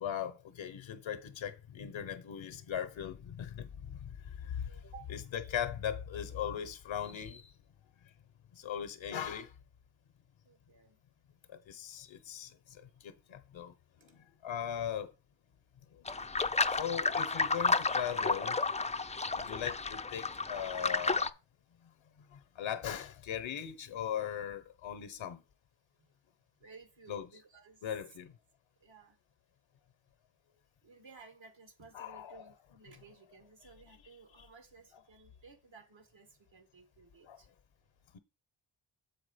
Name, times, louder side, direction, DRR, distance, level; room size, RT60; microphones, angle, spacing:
voice 1, 0.0-3.7 4.0-4.1 5.1-7.5 8.6-9.5 11.7-12.5 13.0-13.7 14.4-15.1 16.8-18.6 19.4-21.3 22.6-25.4 27.1-27.3 27.8-28.3 31.9-32.4 34.4-34.5 37.3-37.4 38.1-38.2, left 9 dB, 70° left, 0.8 m, -39 dB
voice 2, 4.4-5.0 10.4-11.0 12.7-12.8 26.0-26.1 26.6-27.9 28.8-29.2 30.8-37.5, right 5 dB, 70° right, 1.9 m, -57 dB
sound 1, 16.0-21.3, left 4 dB, 15° left, 0.4 m, -32 dB
7.3 x 4.7 x 4.9 m
cardioid pair, 60°, 47 cm